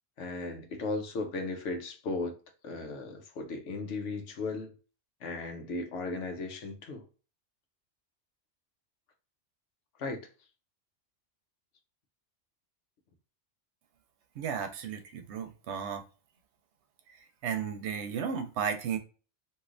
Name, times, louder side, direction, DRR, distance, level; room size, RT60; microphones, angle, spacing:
voice 1, 0.2-2.4 2.6-4.7 5.2-7.0 10.0-10.3, left 3 dB, 75° left, 1.0 m, -36 dB
voice 2, 14.4-16.0 17.4-19.0, right 7 dB, 70° right, 0.8 m, -34 dB
3.2 x 2.5 x 2.5 m
omnidirectional pair, 1.2 m